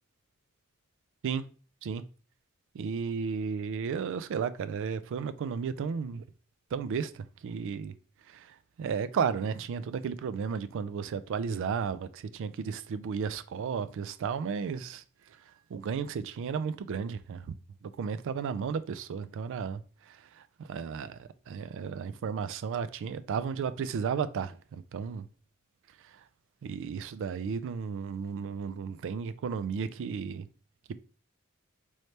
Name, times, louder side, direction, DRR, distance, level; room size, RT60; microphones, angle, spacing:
voice 1, 2.7-6.2 6.7-7.9 8.3-15.4 15.7-25.3 26.0-26.2 26.6-30.5, right 6 dB, 60° right, 0.3 m, -34 dB
3.2 x 3.1 x 2.7 m
head